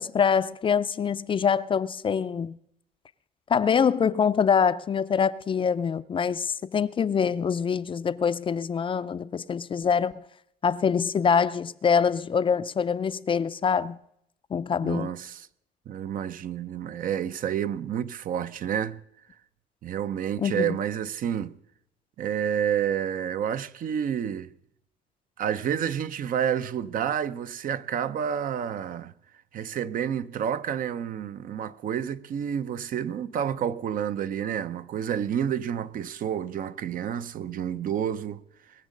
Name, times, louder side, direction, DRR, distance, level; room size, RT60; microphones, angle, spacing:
voice 1, 0.0-2.6 3.5-10.2 10.6-14.0 14.5-15.1 20.4-20.8, left 6 dB, 30° left, 0.4 m, -25 dB
voice 2, 14.8-15.5 15.9-19.0 19.8-21.6 22.2-24.5 25.4-29.1 29.5-38.4, right 9 dB, 55° right, 0.7 m, -29 dB
21.0 x 7.3 x 6.5 m
cardioid pair, 110°, 17 cm